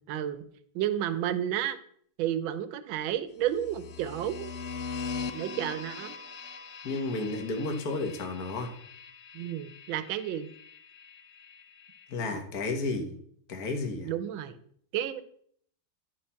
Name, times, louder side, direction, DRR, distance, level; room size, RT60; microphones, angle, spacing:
voice 1, 0.1-0.4 0.7-1.8 2.2-4.5 5.3-6.2 9.3-10.5 14.0-14.6 14.9-15.2, right 11 dB, 75° right, 13 dB, 1.5 m, -31 dB
sound 1, 3.5-12.3, left 5 dB, 80° left, 0.6 m, -42 dB
voice 2, 6.8-8.7 12.1-13.1 13.5-14.1, left 3 dB, 50° left, 3 dB, 1.7 m, -32 dB
12.0 x 4.8 x 5.7 m, 0.63 s
omnidirectional pair, 2.3 m